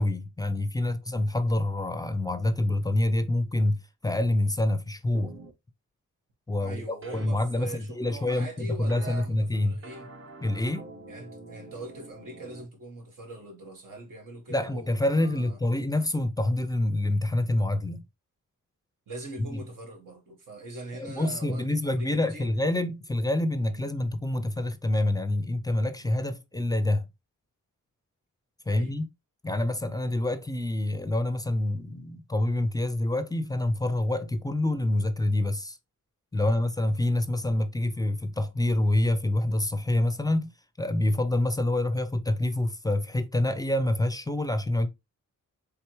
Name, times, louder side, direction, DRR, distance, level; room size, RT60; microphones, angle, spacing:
voice 1, 0.0-5.3 6.5-9.8 10.4-10.9 14.5-18.0 19.4-19.6 21.0-27.1 28.7-29.1 29.4-35.8 36.3-40.5 40.8-44.9, left 1 dB, 10° left, 0.4 m, -27 dB
sound 1, 5.1-5.5 7.0-7.3 8.9-9.3 9.8-12.6, right 2 dB, 40° right, 0.8 m, -46 dB
voice 2, 6.6-10.1 11.1-15.6 19.1-22.5 23.7-23.9 26.0-26.3 28.7-29.0 36.3-36.6, right 2 dB, 90° right, 1.7 m, -42 dB
4.7 x 3.4 x 3.0 m
wide cardioid pair, 120°, 31 cm